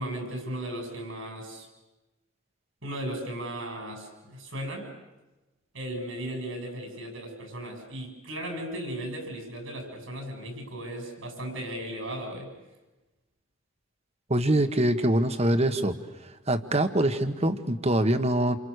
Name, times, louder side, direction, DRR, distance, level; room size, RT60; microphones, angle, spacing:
voice 1, 0.0-1.7 2.8-4.9 5.7-12.5, right 1 dB, 75° right, 3 dB, 6.9 m, -36 dB
voice 2, 14.3-16.0 16.5-18.6, right 1 dB, 30° right, 9 dB, 1.5 m, -24 dB
28.5 x 28.5 x 6.6 m, 1.1 s
head